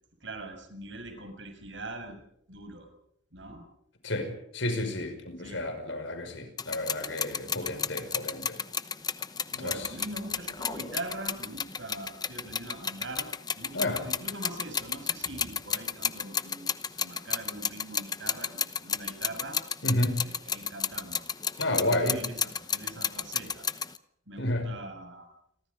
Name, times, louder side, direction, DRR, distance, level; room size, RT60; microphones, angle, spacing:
voice 1, 0.2-2.2 2.5-2.9 3.3-3.6 5.4-5.7 7.5-7.7 9.5-13.3 13.6-19.6 20.1-21.2 21.5-23.7 24.3-25.3, right 2 dB, 70° right, 6 dB, 6.4 m, -42 dB
voice 2, 4.0-8.6 9.5-9.9 13.7-14.0 19.8-20.2 21.6-22.2 24.4-24.7, left 1 dB, 75° left, 7 dB, 5.8 m, -31 dB
sound 1, 6.6-24.0, left 7 dB, 20° left, 0.8 m, -32 dB
29.5 x 23.5 x 5.3 m, 0.72 s
head